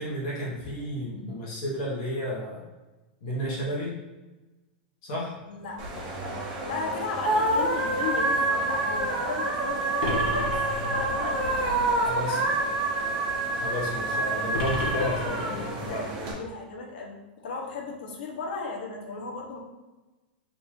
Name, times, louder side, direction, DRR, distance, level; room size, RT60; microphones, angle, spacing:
voice 1, 0.0-2.7 3.2-3.9 5.0-5.4 12.0-12.5 13.6-16.1, equal, 45° left, -5 dB, 1.2 m, -32 dB
voice 2, 5.4-6.3 6.6-10.5 10.8-12.1 15.9-17.2 17.4-19.6, left 4 dB, 70° left, -1 dB, 1.1 m, -36 dB
sound 1, 5.8-16.3, right 2 dB, 35° right, 1.4 m, -27 dB
sound 2, 10.0-11.5 14.5-16.0, left 3 dB, 85° left, 1.2 m, -33 dB
3.9 x 2.6 x 4.7 m, 1.1 s
supercardioid pair, 165°, 5 cm